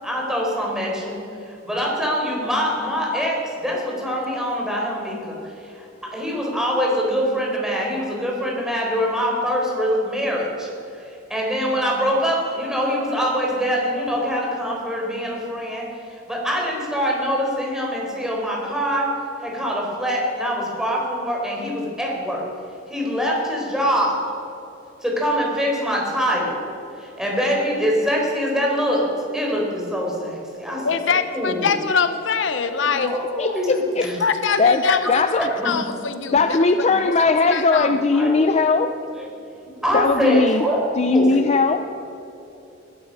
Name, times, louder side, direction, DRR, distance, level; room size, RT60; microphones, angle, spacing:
voice 1, 0.0-10.7 11.0-19.1 19.4-22.5 22.9-24.2 25.0-26.6 27.0-31.7 32.8-33.7 34.0-34.2 35.6-35.7 37.7-38.7 39.7-41.2, equal, 5° right, -2 dB, 4.1 m, -24 dB
voice 2, 30.8-33.1 34.2-35.2 35.6-36.6 37.1-37.2 37.5-38.0, left 5 dB, 70° left, 10 dB, 0.8 m, -23 dB
voice 3, 33.4-34.1 34.6-35.5 36.3-38.9 39.9-40.7 41.0-42.0, left 3 dB, 35° left, 8 dB, 0.5 m, -19 dB
21.0 x 12.5 x 5.4 m, 2.9 s
head